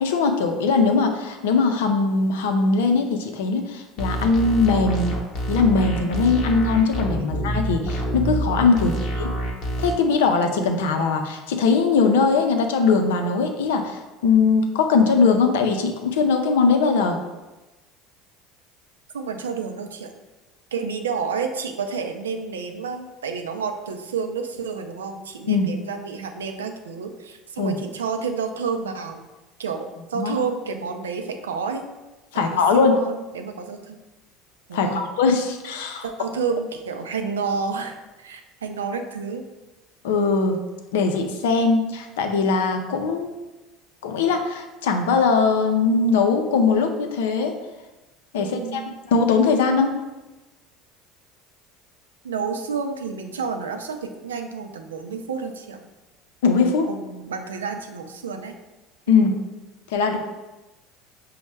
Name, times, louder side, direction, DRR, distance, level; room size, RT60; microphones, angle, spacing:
voice 1, 0.0-5.2 5.5-9.3 9.8-17.2 25.5-25.7 27.6-27.8 30.1-30.3 32.3-33.0 34.7-36.0 40.0-40.6 40.9-43.3 44.0-47.5 48.3-48.8 49.1-49.9 56.4-56.9 59.1-59.3 59.9-60.2, left 4 dB, 80° left, 5 dB, 0.4 m, -20 dB
sound 1, 4.0-9.9, right 1 dB, 55° left, 0.8 m, -26 dB
voice 2, 8.7-9.0 19.1-20.1 20.7-29.2 29.6-31.8 32.3-34.0 34.7-35.0 36.0-39.4 48.4-48.9 52.2-55.8 56.9-58.5 59.1-59.3, right 5 dB, 90° right, 6 dB, 0.3 m, -30 dB
5.2 x 2.1 x 3.2 m, 1.1 s
hypercardioid pair, 75°, 0 cm